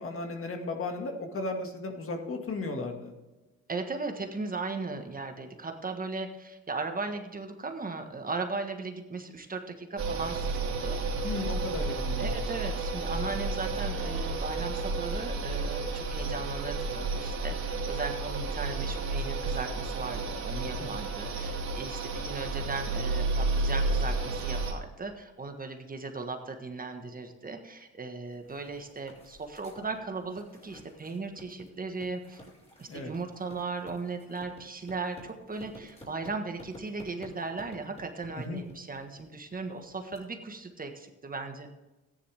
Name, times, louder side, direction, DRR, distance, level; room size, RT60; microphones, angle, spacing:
voice 1, 0.0-3.1 11.2-12.4 20.8-20.9 32.9-33.1 38.4-38.6, left 3 dB, 45° left, 4 dB, 2.1 m, -35 dB
voice 2, 3.7-11.0 12.2-32.4 32.8-41.7, right 3 dB, 30° right, 5 dB, 1.4 m, -37 dB
sound 1, 10.0-24.7, right 3 dB, 65° right, 3.2 m, -31 dB
sound 2, 28.3-40.2, equal, 20° left, 4.7 m, -52 dB
14.0 x 10.0 x 3.5 m, 1.1 s
cardioid pair, 90°, 30 cm